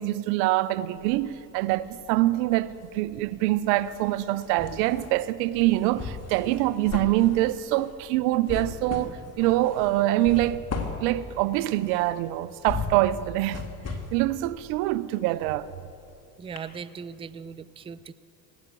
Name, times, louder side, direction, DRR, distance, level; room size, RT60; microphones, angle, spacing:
voice 1, 0.0-10.6 11.0-13.6 14.1-15.7, right 16 dB, 75° right, 0.7 m, -25 dB
sound 1, 1.0-2.1 2.4-16.2 16.6-16.7, left 4 dB, 30° left, 2.1 m, -38 dB
voice 2, 16.4-18.1, right 6 dB, 15° right, 0.3 m, -39 dB
18.0 x 8.8 x 8.1 m
hypercardioid pair, 60°, 49 cm